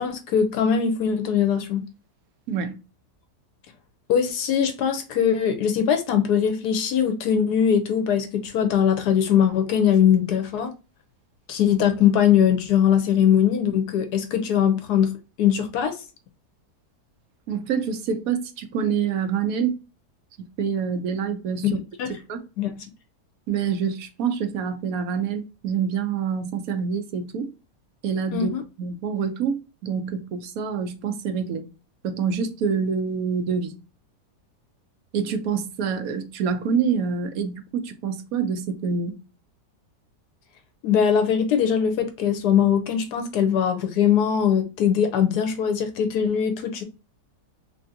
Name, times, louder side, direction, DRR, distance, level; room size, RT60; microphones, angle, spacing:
voice 1, 0.0-1.8 4.1-10.7 11.5-15.1 15.4-15.9 21.6-21.7 22.0-22.1 22.6-22.8 28.3-28.6 40.8-46.8, left 8 dB, 75° left, 1.1 m, -21 dB
voice 2, 17.5-19.8 20.6-21.8 22.3-22.4 23.5-27.5 28.0-28.5 28.8-31.6 32.0-33.7 35.1-39.1, right 6 dB, 70° right, 1.0 m, -26 dB
3.5 x 2.6 x 2.5 m
omnidirectional pair, 1.8 m